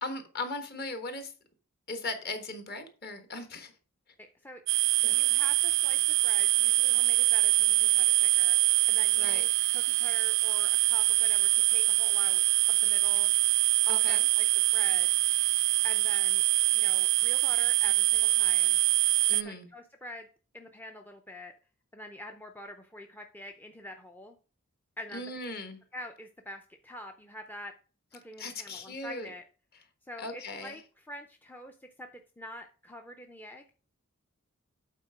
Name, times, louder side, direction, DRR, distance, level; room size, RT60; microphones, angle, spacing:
voice 1, 0.0-1.3 1.9-3.7 5.0-5.2 9.1-9.4 13.9-14.2 19.3-19.7 25.1-25.8 28.4-29.3 30.2-30.8, left 2 dB, 45° left, 1.3 m, -38 dB
sound 1, 4.7-19.4, right 20 dB, 55° right, 0.3 m, -24 dB
voice 2, 5.0-8.6 8.9-12.4 12.7-13.3 13.9-14.5 14.7-15.1 15.8-16.4 16.7-18.8 19.4-20.3 20.5-21.5 21.9-24.4 25.0-25.5 25.9-27.7 28.1-29.4 30.0-32.1 32.4-33.6, left 1 dB, 10° left, 0.4 m, -45 dB
8.2 x 4.3 x 4.9 m
head